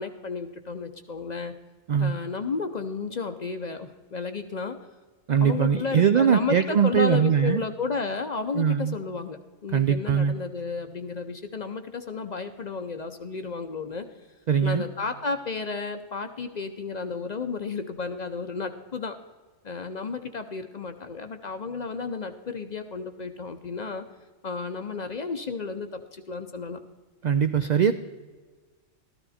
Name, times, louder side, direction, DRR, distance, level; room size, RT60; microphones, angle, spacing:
voice 1, 0.0-1.5 2.0-4.8 5.4-14.1 14.6-19.2 19.6-24.0 24.4-26.8, left 4 dB, 45° left, 8 dB, 0.6 m, -32 dB
voice 2, 5.3-7.6 8.5-9.0 9.7-10.4 14.5-14.8 27.2-27.9, right 7 dB, 65° right, 10 dB, 0.4 m, -21 dB
13.5 x 12.5 x 4.2 m, 1.4 s
omnidirectional pair, 1.3 m